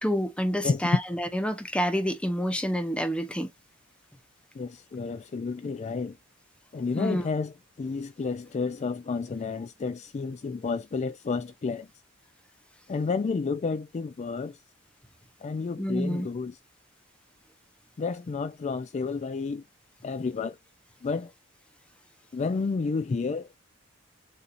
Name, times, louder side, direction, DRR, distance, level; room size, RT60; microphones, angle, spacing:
voice 1, 0.0-3.5 7.0-7.2 15.8-16.3, equal, 5° left, 0.8 m, -28 dB
voice 2, 0.6-1.0 4.5-6.2 6.7-11.9 12.9-14.6 15.4-16.6 18.0-19.6 20.0-20.6 21.0-21.3 22.3-23.5, left 4 dB, 35° left, 0.3 m, -30 dB
6.8 x 2.6 x 2.5 m
head